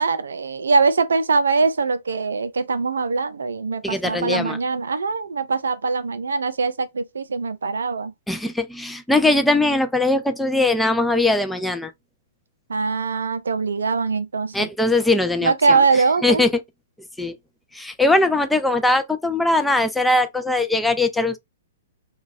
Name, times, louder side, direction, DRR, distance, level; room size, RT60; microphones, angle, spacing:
voice 1, 0.0-8.1 12.7-14.7 15.4-16.4, right 4 dB, 70° right, 0.4 m, -22 dB
voice 2, 3.8-4.6 8.3-11.9 14.5-16.6 17.2-17.4 17.7-21.4, left 2 dB, 5° left, 0.4 m, -20 dB
3.8 x 2.3 x 2.4 m
figure-of-eight pair, 110°, 0 cm